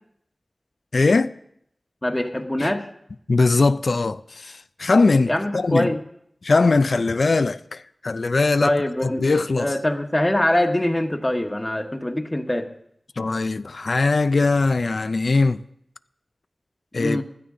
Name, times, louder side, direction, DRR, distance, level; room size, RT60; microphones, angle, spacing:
voice 1, 0.9-1.3 2.6-2.7 3.3-6.0 6.4-8.8 9.0-9.7 13.2-15.6 16.9-17.2, left 3 dB, 75° left, 0.4 m, -20 dB
voice 2, 2.0-2.9 5.2-6.0 8.6-9.2 9.6-12.7 17.0-17.2, left 1 dB, 20° left, 1.1 m, -23 dB
15.5 x 12.5 x 3.8 m
wide cardioid pair, 65°, 0 cm